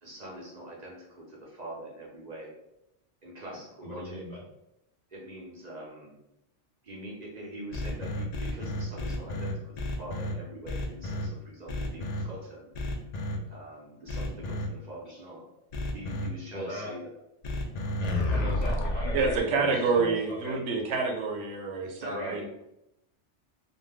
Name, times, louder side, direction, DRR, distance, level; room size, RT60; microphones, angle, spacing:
voice 1, 0.0-2.5 3.2-4.2 5.1-6.2 6.8-12.7 13.5-15.4 15.9-17.1 17.8-17.9 20.0-20.1 21.8-22.4, right 1 dB, 45° right, -4 dB, 0.7 m, -43 dB
voice 2, 3.8-4.4 15.1-15.2 16.5-16.9 18.3-20.1 20.4-20.6 22.1-22.3, equal, 40° left, -5 dB, 0.8 m, -37 dB
sound 1, 7.7-10.3 10.7-11.3 11.7-12.2 12.7-13.4 14.1-14.7 15.7-16.3 17.4-19.4, left 1 dB, 65° left, 0.4 m, -31 dB
voice 3, 19.1-22.5, right 4 dB, 85° right, 2 dB, 0.9 m, -28 dB
2.5 x 2.1 x 3.3 m, 0.85 s
omnidirectional pair, 1.2 m